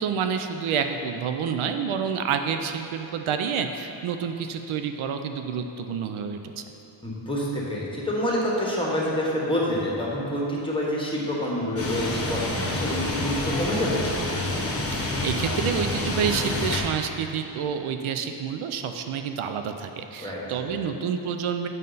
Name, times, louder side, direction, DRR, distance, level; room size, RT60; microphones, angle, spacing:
voice 1, 0.0-6.6 14.9-21.7, right 7 dB, 85° right, 6 dB, 0.5 m, -28 dB
voice 2, 7.0-14.1 20.2-20.8, equal, 10° left, -4 dB, 1.3 m, -27 dB
sound 1, 11.8-16.8, left 2 dB, 30° left, 1.0 m, -28 dB
7.5 x 5.4 x 4.0 m, 3.0 s
wide cardioid pair, 120°, 47 cm